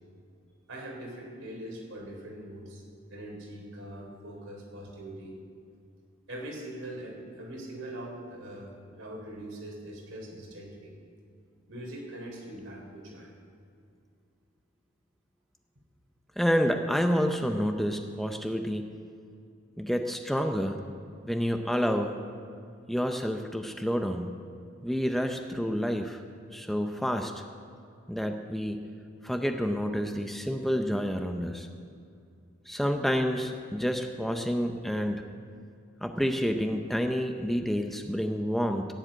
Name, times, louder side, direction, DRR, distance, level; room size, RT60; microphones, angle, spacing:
voice 1, 0.7-2.8 3.1-5.4 6.3-10.9 11.7-13.3, right 1 dB, 80° right, -1 dB, 3.8 m, -42 dB
voice 2, 16.4-19.0 19.8-20.8 21.2-22.2 22.9-24.3 24.8-26.2 26.5-27.3 28.1-28.9 29.2-31.7 32.7-35.3 36.0-38.9, equal, ahead, 5 dB, 0.6 m, -29 dB
14.5 x 7.7 x 9.0 m, 2.4 s
head